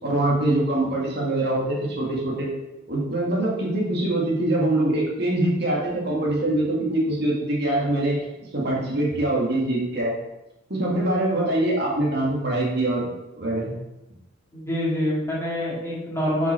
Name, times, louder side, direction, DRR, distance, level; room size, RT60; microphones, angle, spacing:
voice 1, 0.0-2.5 2.9-8.3 8.5-10.1 10.7-13.1 13.4-13.7 14.9-15.0, right 1 dB, 55° right, -3 dB, 1.9 m, -24 dB
voice 2, 14.5-16.5, left 1 dB, 15° left, -6 dB, 2.1 m, -26 dB
6.5 x 5.8 x 4.4 m, 0.96 s
head